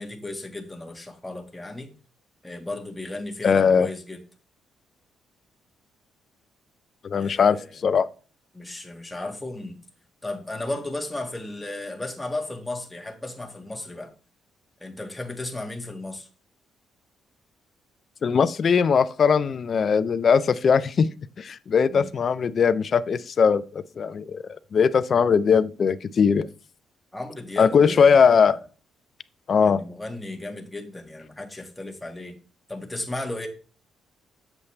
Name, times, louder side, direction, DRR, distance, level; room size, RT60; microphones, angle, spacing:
voice 1, 0.0-1.9 2.4-4.2 7.2-7.8 8.5-9.8 10.2-14.1 14.8-16.3 21.9-22.1 27.1-28.6 29.6-32.4 32.7-33.5, left 2 dB, 10° left, 1.8 m, -35 dB
voice 2, 3.4-3.9 7.0-8.1 18.2-21.1 21.4-26.5 27.6-28.6 29.5-29.8, left 6 dB, 50° left, 0.5 m, -20 dB
8.0 x 7.2 x 3.3 m
cardioid pair, 90°, 0 cm